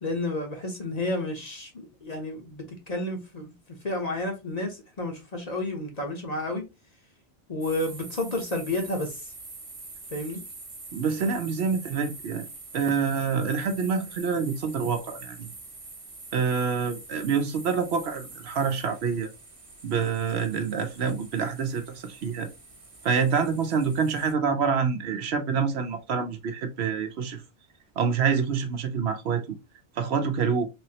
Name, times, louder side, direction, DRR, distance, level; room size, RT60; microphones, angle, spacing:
voice 1, 0.0-3.5 3.8-6.6 7.5-9.3 10.1-10.4, left 2 dB, 40° left, 0.8 m, -31 dB
sound 1, 7.6-24.3, right 3 dB, 30° right, 0.9 m, -45 dB
voice 2, 10.9-12.4 12.7-15.5 16.3-19.3 19.8-22.5 23.0-27.4 28.0-29.4 30.0-30.7, right 6 dB, 70° right, 0.8 m, -27 dB
3.4 x 3.0 x 2.8 m
omnidirectional pair, 1.2 m